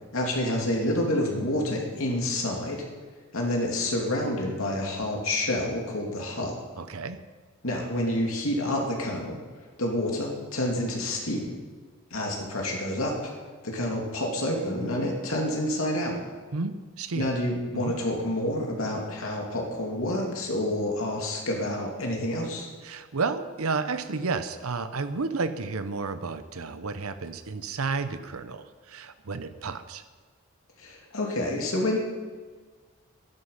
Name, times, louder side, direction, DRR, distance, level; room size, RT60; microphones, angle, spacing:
voice 1, 0.1-2.8 3.3-6.6 7.6-9.4 9.8-11.5 12.1-13.3 13.6-16.2 17.1-22.7 30.8-32.0, left 1 dB, 80° left, -1 dB, 2.7 m, -28 dB
voice 2, 6.8-7.2 16.5-17.3 17.7-17.9 22.8-30.0, right 4 dB, 85° right, 11 dB, 0.8 m, -31 dB
11.5 x 11.0 x 5.8 m, 1.5 s
head